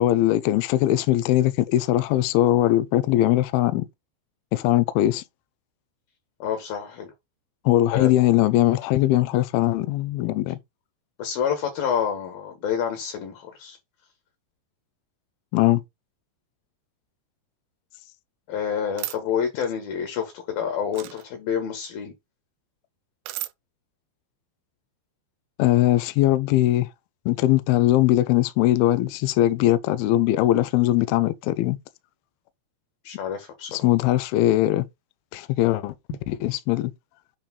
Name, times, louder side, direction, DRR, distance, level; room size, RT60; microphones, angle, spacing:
voice 1, 0.0-3.9 4.5-5.2 7.7-10.6 15.5-15.8 25.6-26.9 27.3-31.8 33.7-34.9 35.3-35.9 36.3-36.9, left 15 dB, 80° left, 2.3 m, -20 dB
voice 2, 6.4-7.1 7.9-8.1 11.2-13.8 18.5-22.1 33.0-33.8, left 8 dB, 60° left, 3.3 m, -28 dB
sound 1, 19.0-19.2 20.9-21.3 23.3-23.5, right 15 dB, 80° right, 2.6 m, -33 dB
8.7 x 3.4 x 5.4 m
omnidirectional pair, 4.9 m